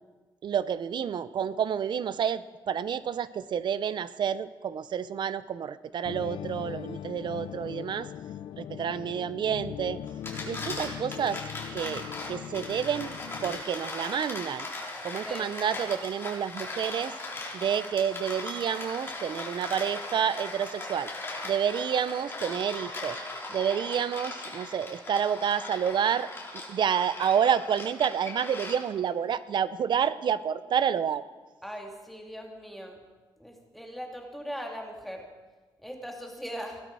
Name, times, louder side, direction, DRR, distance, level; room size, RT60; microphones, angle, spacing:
voice 1, 0.4-8.1 8.6-10.0 10.4-11.4 11.7-14.7 15.0-17.1 17.5-21.1 21.4-23.2 23.5-26.3 26.7-31.2, right 8 dB, 60° right, 16 dB, 0.6 m, -29 dB
sound 1, 6.1-13.6, left 10 dB, 80° left, 0.5 m, -40 dB
sound 2, 10.1-29.1, left 2 dB, 30° left, 4.0 m, -39 dB
voice 2, 31.6-33.0 33.4-35.3 35.8-36.8, equal, ahead, 1 dB, 2.0 m, -39 dB
17.5 x 12.0 x 4.8 m, 1.3 s
cardioid pair, 90°, 9 cm